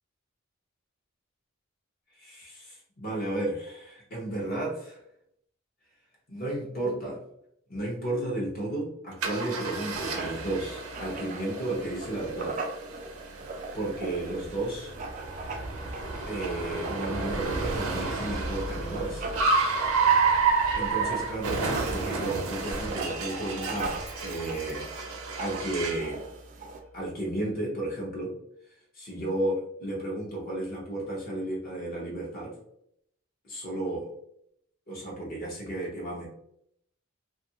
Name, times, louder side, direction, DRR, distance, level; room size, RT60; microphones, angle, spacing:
voice 1, 2.2-5.0 6.3-7.2 7.7-12.6 13.7-14.9 16.3-19.2 20.8-24.9 25.4-26.2 26.9-28.3 28.9-32.5 33.4-34.1 34.9-36.3, right 1 dB, 45° left, -4 dB, 0.8 m, -33 dB
Writing, 9.2-26.8, right 3 dB, 35° right, 0.3 m, -40 dB
Car, 9.2-26.1, right 4 dB, 90° right, 0.6 m, -30 dB
2.8 x 2.4 x 2.7 m, 0.73 s
head